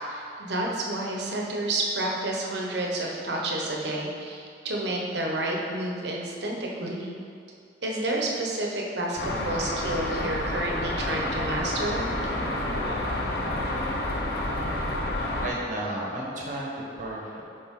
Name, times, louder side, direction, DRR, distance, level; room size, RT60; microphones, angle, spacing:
voice 1, 0.0-7.1 7.8-12.0, right 1 dB, 65° right, -2 dB, 1.0 m, -30 dB
sound 1, 9.2-15.5, left 1 dB, 60° left, 0.9 m, -29 dB
voice 2, 15.4-17.4, right 1 dB, 45° right, -3 dB, 1.2 m, -33 dB
7.1 x 5.0 x 3.7 m, 2.4 s
head